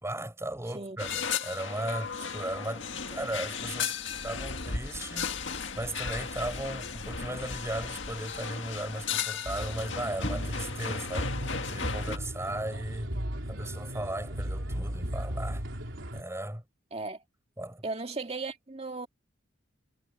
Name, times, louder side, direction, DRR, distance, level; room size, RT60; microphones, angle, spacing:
voice 1, 0.0-3.9 4.2-5.5 5.8-11.3 11.7-13.1 13.5-15.7 16.1-16.6 17.6-17.8, right 1 dB, 15° right, 5.5 m, -36 dB
sound 1, 1.0-12.2, left 6 dB, 75° left, 1.9 m, -35 dB
sound 2, 9.5-16.2, equal, 85° right, 3.7 m, -35 dB
voice 2, 16.9-17.2 17.8-19.1, right 3 dB, 35° right, 2.1 m, -36 dB
head